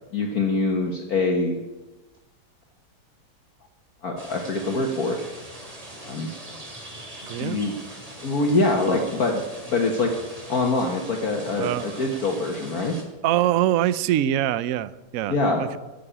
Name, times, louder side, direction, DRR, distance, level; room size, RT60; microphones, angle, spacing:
voice 1, 0.1-1.6 4.0-5.2 6.0-6.3 7.4-7.7 8.2-9.4 9.7-10.1 10.5-13.0 15.3-15.6, left 3 dB, 50° left, 2 dB, 1.6 m, -24 dB
sound 1, 4.2-13.0, right 1 dB, 20° right, 2.6 m, -41 dB
voice 2, 7.3-7.6 11.6-12.1 13.2-15.8, right 12 dB, 85° right, 16 dB, 0.7 m, -24 dB
14.0 x 6.9 x 9.9 m, 1.1 s
omnidirectional pair, 2.2 m